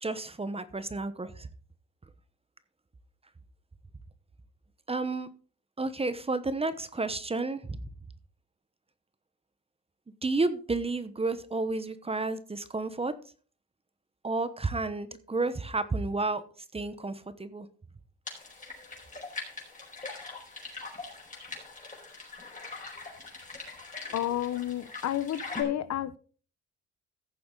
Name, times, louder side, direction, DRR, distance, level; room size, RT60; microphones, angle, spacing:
voice 1, 0.0-1.5 4.9-5.3 5.8-7.8 10.2-13.1 14.2-16.4 16.7-17.7, right 3 dB, 20° right, 1.0 m, -31 dB
sound 1, 18.3-25.6, left 3 dB, 25° left, 4.5 m, -42 dB
voice 2, 24.1-26.2, left 12 dB, 60° left, 0.8 m, -31 dB
15.0 x 6.9 x 3.8 m
cardioid pair, 90°, 30 cm